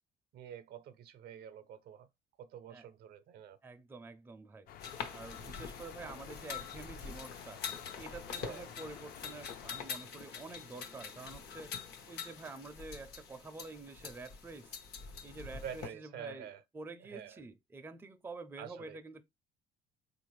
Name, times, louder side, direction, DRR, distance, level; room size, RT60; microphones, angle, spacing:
voice 1, 0.3-2.1 2.4-3.6 8.4-8.7 15.6-16.6 17.1-17.4 18.6-19.0, right 9 dB, 70° right, 0.6 m, -47 dB
voice 2, 3.6-4.7 5.1-14.8 15.2-16.5 16.7-19.2, right 3 dB, 15° right, 0.4 m, -48 dB
sound 1, 4.7-9.8, left 9 dB, 60° left, 0.5 m, -52 dB
sound 2, 4.8-15.9, left 6 dB, 75° left, 0.9 m, -45 dB
4.0 x 2.4 x 3.1 m
cardioid pair, 110°, 17 cm